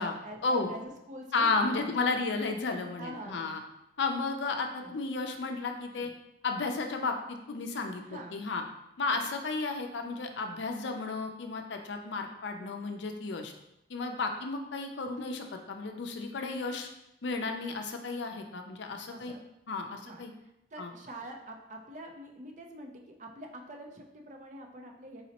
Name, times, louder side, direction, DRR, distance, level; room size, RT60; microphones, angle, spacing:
voice 1, 0.0-2.3 3.0-3.6 4.8-4.9 5.9-6.1 8.0-8.4 9.1-9.2 19.1-19.4 19.9-25.2, right 1 dB, 40° right, 2 dB, 0.5 m, -45 dB
voice 2, 1.3-3.6 4.0-6.1 6.4-8.6 9.0-13.5 13.9-16.9 17.2-19.3 19.7-20.3 20.8-20.9, left 3 dB, 70° left, 5 dB, 0.5 m, -33 dB
4.0 x 4.0 x 2.9 m, 0.87 s
head